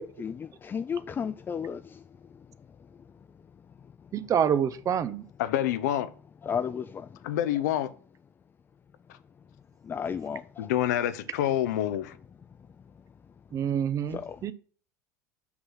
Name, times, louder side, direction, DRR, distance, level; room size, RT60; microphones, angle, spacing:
voice 1, 0.0-2.0 6.4-7.1 9.9-10.4 14.1-14.4, left 7 dB, 20° left, 0.4 m, -33 dB
voice 2, 4.1-5.2 13.5-14.5, right 8 dB, 35° right, 0.7 m, -27 dB
voice 3, 5.4-6.1 7.2-7.9 10.6-12.1, left 12 dB, 65° left, 0.7 m, -27 dB
6.2 x 6.0 x 5.6 m
figure-of-eight pair, 75°, 10 cm